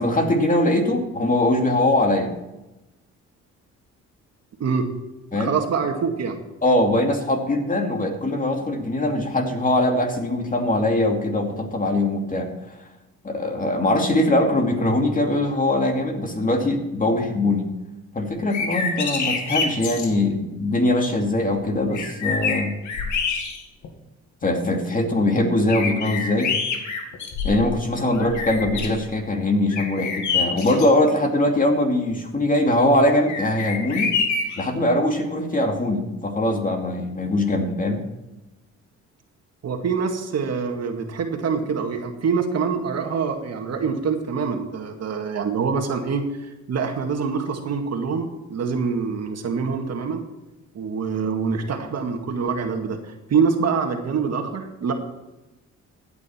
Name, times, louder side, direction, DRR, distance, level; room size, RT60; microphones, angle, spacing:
voice 1, 0.0-2.3 5.3-5.5 6.6-12.8 13.2-17.7 18.1-22.8 24.4-26.5 27.4-34.2 34.6-38.0, left 1 dB, 25° left, 3 dB, 2.5 m, -22 dB
voice 2, 4.6-4.9 5.3-6.4 39.6-50.2 50.7-54.9, right 5 dB, 55° right, 4 dB, 2.0 m, -25 dB
sound 1, 18.4-20.1 21.5-21.6 21.9-23.9 24.4-24.5 25.7-27.8 28.1-29.0 29.7-30.9 33.3-34.7, left 5 dB, 75° left, 2.1 m, -27 dB
15.0 x 9.5 x 4.5 m, 1.0 s
cardioid pair, 90°, 30 cm